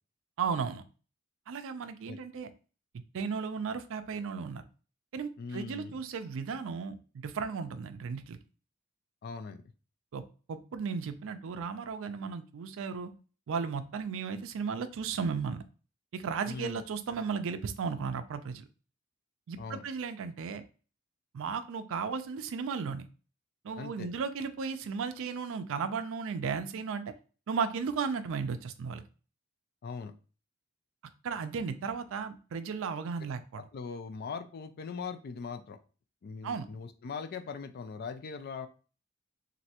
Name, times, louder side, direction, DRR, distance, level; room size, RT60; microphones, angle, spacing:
voice 1, 0.4-0.8 1.5-2.5 2.9-4.6 5.1-7.0 7.2-8.4 10.1-10.2 10.5-13.1 13.5-15.6 16.1-18.7 19.5-20.6 21.3-23.1 23.6-27.0 27.5-29.0 31.2-33.6 36.4-36.7, right 5 dB, 65° right, 9 dB, 0.4 m, -35 dB
voice 2, 5.4-5.9 9.2-9.6 16.5-16.8 19.6-19.8 23.8-24.1 29.8-30.1 33.7-35.8 36.2-38.7, left 5 dB, 50° left, 9 dB, 0.4 m, -40 dB
3.1 x 2.6 x 2.8 m, 0.36 s
head